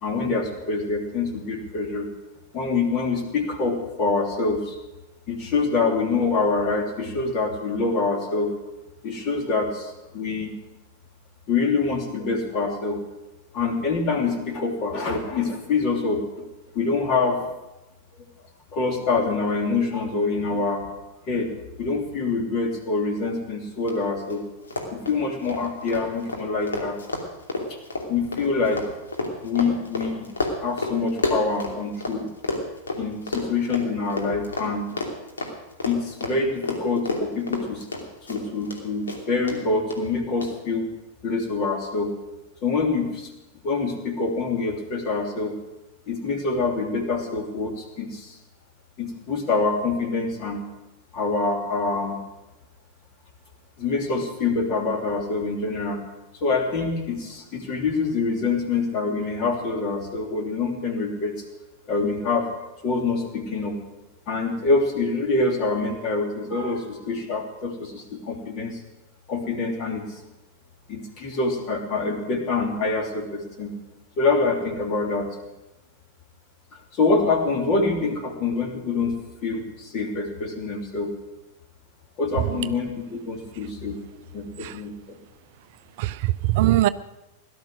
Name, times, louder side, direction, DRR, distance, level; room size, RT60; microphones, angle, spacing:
voice 1, 0.0-2.1 2.5-4.8 5.3-8.5 9.0-10.5 11.5-13.0 13.5-16.5 16.7-17.5 18.7-20.8 21.3-21.5 21.8-24.4 24.9-27.0 27.7-27.8 28.1-28.8 29.4-30.3 30.6-32.3 33.0-34.9 35.8-37.9 38.3-40.9 41.2-42.1 42.6-43.3 43.6-45.5 46.1-48.4 49.0-50.6 51.1-52.2 53.8-56.0 56.3-61.3 61.9-62.5 62.8-63.8 64.3-68.8 69.3-70.2 70.9-73.7 74.2-75.3 76.9-79.1 79.4-81.1 82.2-84.0 84.3-85.2, left 3 dB, 40° left, 3 dB, 3.1 m, -25 dB
Run, 23.9-24.0 24.2-24.4 24.6-32.2 32.4-38.8 39.1-39.6 39.9-40.0 40.4-40.5, left 2 dB, 70° left, 2.8 m, -30 dB
voice 2, 86.0-86.9, right 15 dB, 50° right, 15 dB, 0.5 m, -22 dB
17.5 x 12.0 x 6.5 m, 1.0 s
figure-of-eight pair, 90°, 0 cm